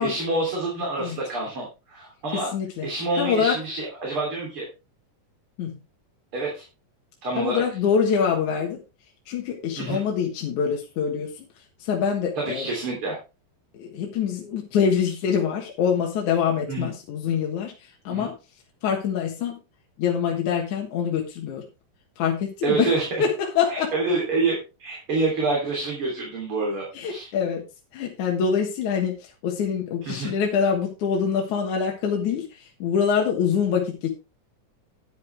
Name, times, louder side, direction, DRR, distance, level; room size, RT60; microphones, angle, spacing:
voice 1, 0.0-2.5 2.8-4.7 6.3-6.6 7.2-7.6 9.8-10.0 12.4-13.2 16.7-16.9 18.1-18.3 22.6-23.0 23.7-27.3 30.1-30.4, right 3 dB, 40° right, -2 dB, 4.0 m, -27 dB
voice 2, 2.3-2.9 3.2-3.6 5.6-5.8 7.4-8.8 9.3-11.5 11.8-12.7 13.7-18.3 18.8-19.6 20.0-21.6 22.2-23.9 26.9-27.6 27.9-34.1, left 7 dB, 65° left, 0 dB, 2.9 m, -25 dB
10.5 x 10.0 x 3.4 m, 0.29 s
omnidirectional pair, 3.8 m